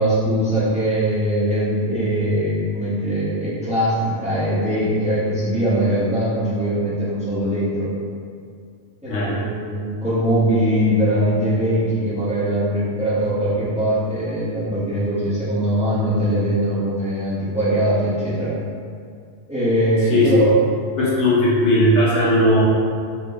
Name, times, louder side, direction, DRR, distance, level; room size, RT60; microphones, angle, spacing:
voice 1, 0.0-7.9 9.0-18.5 19.5-20.5, right 1 dB, 5° right, -11 dB, 0.7 m, -21 dB
voice 2, 21.0-22.6, left 1 dB, 75° left, -7 dB, 1.1 m, -17 dB
4.3 x 2.1 x 2.8 m, 2.3 s
omnidirectional pair, 1.2 m